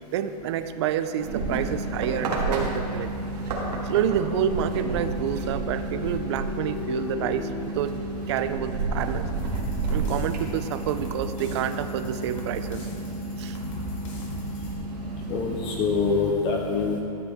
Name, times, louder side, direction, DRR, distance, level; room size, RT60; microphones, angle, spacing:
voice 1, 0.1-3.1 3.8-8.0 8.3-9.3 9.9-12.9 13.4-13.6, right 9 dB, 45° right, 11 dB, 0.4 m, -28 dB
sound 1, 1.2-16.2, right 2 dB, 80° right, 2.1 m, -31 dB
sound 2, 5.2-9.1, left 6 dB, 65° left, 1.0 m, -39 dB
sound 3, 9.4-14.7, left 1 dB, 50° left, 2.1 m, -40 dB
voice 2, 15.3-17.0, left 4 dB, 25° left, 1 dB, 0.6 m, -25 dB
12.0 x 7.9 x 3.5 m, 2.8 s
hypercardioid pair, 160°, 20 cm